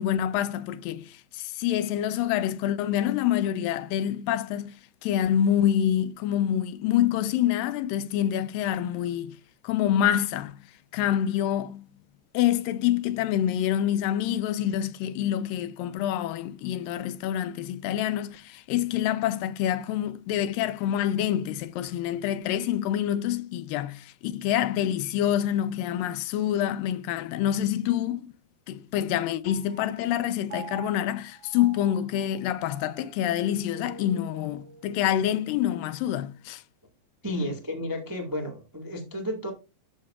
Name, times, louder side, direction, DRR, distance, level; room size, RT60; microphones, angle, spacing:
voice 1, 0.0-4.7 5.0-9.4 9.6-10.6 10.9-11.8 12.3-28.3 28.7-36.6 37.4-37.5, left 11 dB, 85° left, 2.3 m, -26 dB
Piano, 29.5-36.2, right 7 dB, 85° right, 3.0 m, -47 dB
voice 2, 37.2-39.5, left 1 dB, 15° right, 0.7 m, -32 dB
13.0 x 6.5 x 2.4 m
omnidirectional pair, 4.0 m